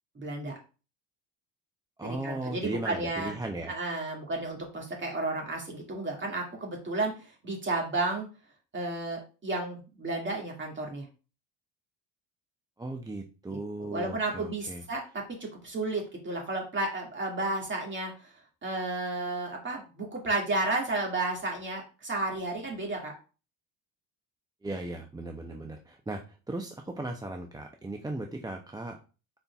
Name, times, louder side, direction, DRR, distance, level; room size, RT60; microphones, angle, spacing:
voice 1, 0.2-0.6 2.0-3.3 3.7-8.3 8.7-11.1 13.8-15.0 15.4-18.3 18.6-23.1 25.5-25.6, right 2 dB, 30° right, 0 dB, 2.1 m, -32 dB
voice 2, 2.0-3.7 12.8-14.8 24.6-29.0, right 2 dB, 10° right, 3 dB, 0.5 m, -37 dB
5.0 x 4.3 x 2.3 m, 0.34 s
supercardioid pair, 90°, 39 cm